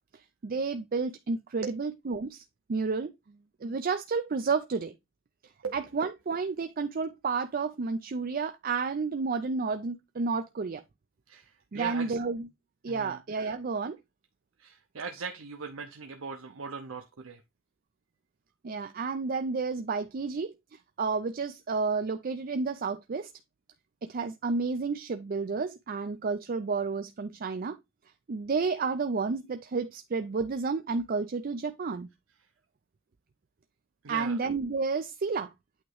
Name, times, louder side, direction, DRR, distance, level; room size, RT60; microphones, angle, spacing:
voice 1, 0.4-2.4 2.7-3.1 3.6-4.9 5.7-10.8 11.7-12.5 12.8-14.0 18.6-20.5 21.0-23.3 24.1-27.8 28.3-32.1 34.1-35.5, right 4 dB, 45° right, 0.5 m, -31 dB
voice 2, 11.3-12.2 12.9-13.2 14.6-17.4 34.0-34.4, right 5 dB, 85° right, 0.7 m, -39 dB
8.7 x 3.0 x 4.7 m
head